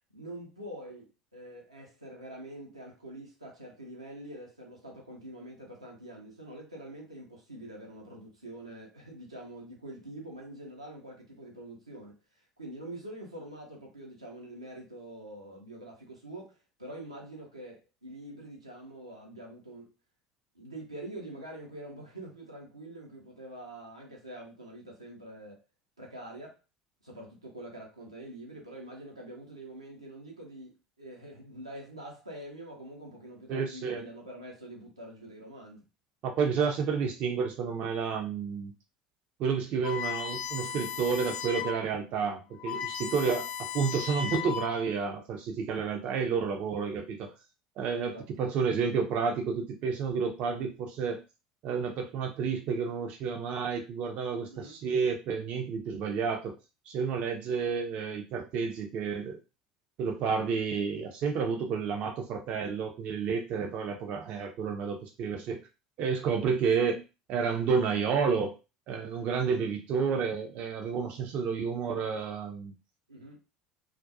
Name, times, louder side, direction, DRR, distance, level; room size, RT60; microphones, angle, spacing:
voice 1, 0.1-19.9 20.5-25.6 26.0-26.6 27.0-35.8 46.2-46.3 48.0-48.3 54.5-54.8 63.5-63.7 73.1-73.4, right 1 dB, 90° right, 0.7 m, -45 dB
voice 2, 33.5-34.1 36.2-38.7 39.4-47.3 47.8-51.2 51.6-56.5 56.9-59.4 60.0-65.6 66.0-67.0 67.3-68.5 68.9-72.7, right 5 dB, 45° right, 0.5 m, -30 dB
sound 1, 39.8-41.9 42.2-42.3 42.5-45.0, left 8 dB, 40° left, 0.4 m, -36 dB
2.4 x 2.2 x 2.5 m
figure-of-eight pair, 70°, 3 cm